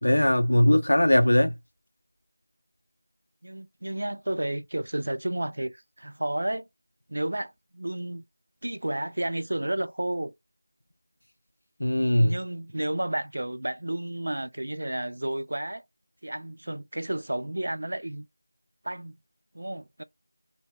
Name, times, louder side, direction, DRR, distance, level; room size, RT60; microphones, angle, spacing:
voice 1, 0.0-1.5 11.8-12.3, left 1 dB, 80° left, 0.5 m, -20 dB
voice 2, 3.4-6.7 7.1-8.2 8.6-10.3 12.0-15.8 16.2-18.3 18.8-19.2 19.5-20.0, right 1 dB, 65° right, 0.3 m, -31 dB
2.2 x 2.1 x 3.3 m
figure-of-eight pair, 175°, 0 cm